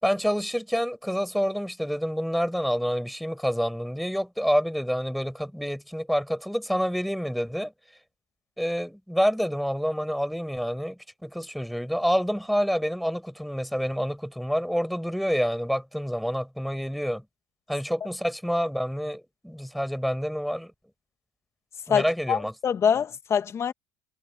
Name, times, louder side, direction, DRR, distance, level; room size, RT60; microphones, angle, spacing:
voice 1, 0.0-7.7 8.6-17.2 17.7-20.7 21.9-22.5, equal, ahead, 5.1 m, -28 dB
voice 2, 21.9-23.7, left 7 dB, 35° left, 1.8 m, -25 dB
supercardioid pair, 95°, 8 cm